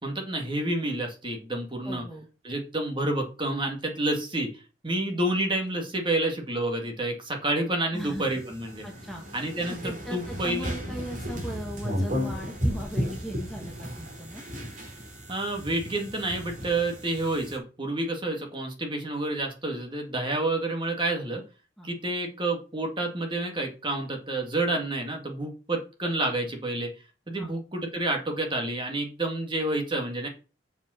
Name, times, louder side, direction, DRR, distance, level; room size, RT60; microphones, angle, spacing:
voice 1, 0.0-2.0 2.4-8.9 9.3-10.8 15.3-21.4 21.8-26.9 27.3-30.3, right 2 dB, 25° right, 2 dB, 2.0 m, -29 dB
voice 2, 1.8-2.3 7.9-8.3 8.8-9.2 9.8-14.4 21.8-21.9 27.4-27.6, equal, ahead, 0 dB, 1.4 m, -38 dB
sound 1, 8.0-17.6, equal, 45° right, 3.5 m, -34 dB
6.9 x 5.7 x 6.2 m, 0.35 s
head